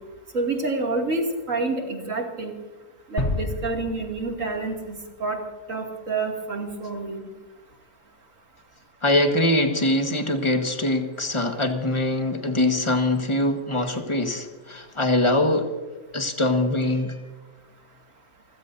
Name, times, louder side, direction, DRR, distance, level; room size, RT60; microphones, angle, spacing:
voice 1, 0.3-2.5 3.1-5.4 5.7-7.2, right 3 dB, 50° right, 1 dB, 2.8 m, -28 dB
sound 1, 3.2-5.1, left 2 dB, 45° left, 2.5 m, -30 dB
voice 2, 9.0-15.7 16.1-17.2, left 1 dB, 20° left, 5 dB, 1.4 m, -23 dB
29.0 x 16.0 x 2.7 m, 1.3 s
omnidirectional pair, 1.7 m